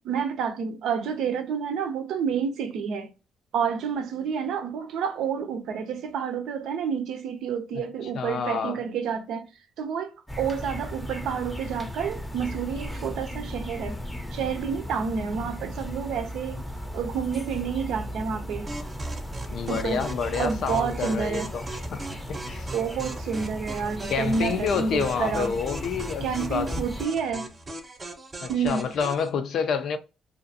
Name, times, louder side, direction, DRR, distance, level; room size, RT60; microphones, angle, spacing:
voice 1, 0.0-3.1 3.5-9.5 9.8-14.0 14.3-16.6 16.9-18.7 19.7-20.0 20.4-21.5 22.7-25.5 26.2-27.5 28.5-28.8, right 6 dB, 80° right, 0.5 m, -29 dB
voice 2, 8.1-8.8 19.5-21.6 21.9-22.7 24.1-26.8 28.4-30.0, left 6 dB, 70° left, 0.4 m, -28 dB
sound 1, 10.3-27.1, left 1 dB, 10° left, 0.6 m, -36 dB
sound 2, 18.7-29.3, right 2 dB, 30° right, 0.7 m, -39 dB
2.5 x 2.4 x 2.6 m
cardioid pair, 90°, 0 cm